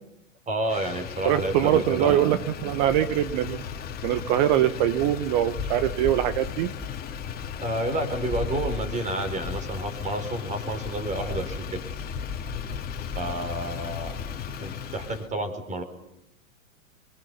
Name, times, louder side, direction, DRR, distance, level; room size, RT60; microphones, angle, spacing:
voice 1, 0.5-2.3 7.6-11.8 13.1-14.2 14.6-15.8, right 1 dB, 15° right, 8 dB, 4.7 m, -30 dB
Motor vehicle (road), 0.6-15.3, left 7 dB, 20° left, 2.6 m, -35 dB
voice 2, 1.2-3.6 4.0-6.7, right 12 dB, 35° right, 11 dB, 1.2 m, -23 dB
26.5 x 23.5 x 7.0 m, 0.81 s
figure-of-eight pair, 110°, 40 cm